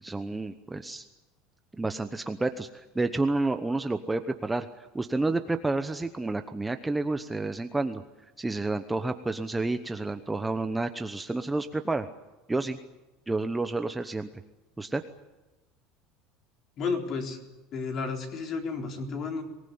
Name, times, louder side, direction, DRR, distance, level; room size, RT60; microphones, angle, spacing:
voice 1, 0.0-1.0 1.7-4.7 4.9-8.0 8.4-12.1 12.5-12.8 13.3-14.3 14.8-15.0, right 2 dB, 10° right, 8 dB, 0.9 m, -30 dB
voice 2, 16.8-17.4 17.7-19.4, left 4 dB, 35° left, 4 dB, 4.0 m, -32 dB
24.5 x 19.5 x 9.5 m, 1.1 s
cardioid pair, 160°, 0 cm